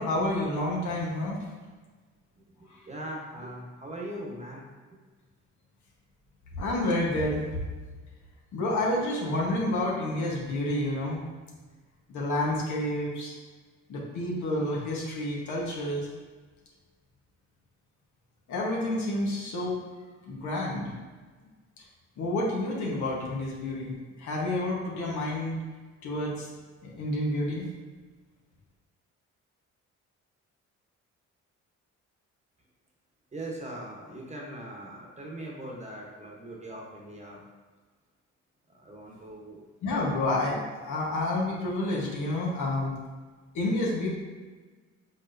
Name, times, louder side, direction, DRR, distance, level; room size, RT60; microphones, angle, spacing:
voice 1, 0.0-1.4 6.6-7.6 8.5-11.2 12.1-13.3 13.9-16.1 18.5-19.8 20.3-20.9 22.2-25.6 26.0-26.5 26.8-27.7 39.8-43.0 43.5-44.1, left 1 dB, 75° left, -3 dB, 1.2 m, -29 dB
voice 2, 2.6-4.6 33.3-37.4 38.7-39.6, right 1 dB, 25° right, -2 dB, 1.0 m, -40 dB
4.6 x 4.3 x 2.6 m, 1.4 s
cardioid pair, 90°, 30 cm